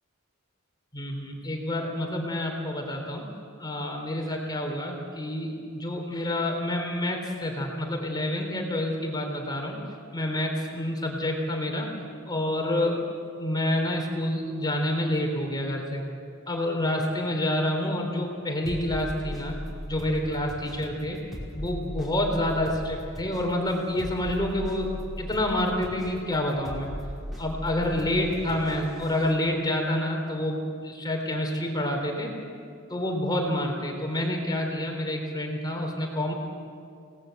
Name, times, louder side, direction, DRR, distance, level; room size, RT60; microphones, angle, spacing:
voice 1, 0.9-3.2 3.6-9.8 10.1-11.9 12.3-13.1 13.4-16.0 16.5-19.6 19.9-21.2 21.5-26.9 27.4-32.3 32.9-36.3, left 1 dB, 20° left, 2 dB, 3.7 m, -28 dB
sound 1, 18.7-29.3, equal, ahead, 5.3 m, -38 dB
29.5 x 19.0 x 7.9 m, 2.3 s
head